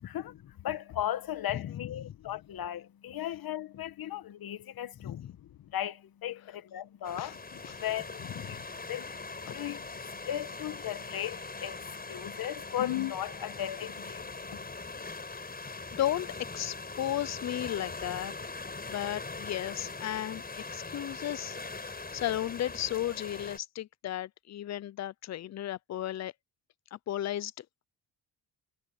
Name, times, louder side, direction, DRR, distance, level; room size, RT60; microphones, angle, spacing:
voice 1, 0.0-5.2 5.6-7.4 7.8-8.6 8.9-14.7, left 12 dB, 60° left, 1.3 m, -37 dB
voice 2, 1.5-2.1 5.0-5.3 7.2-7.8 8.2-8.7 9.5-9.7 16.0-18.3 18.9-26.3 26.9-27.7, left 12 dB, 45° left, 0.5 m, -35 dB
sound 1, 7.0-23.6, left 3 dB, 25° left, 5.9 m, -41 dB
cardioid pair, 105°, 40 cm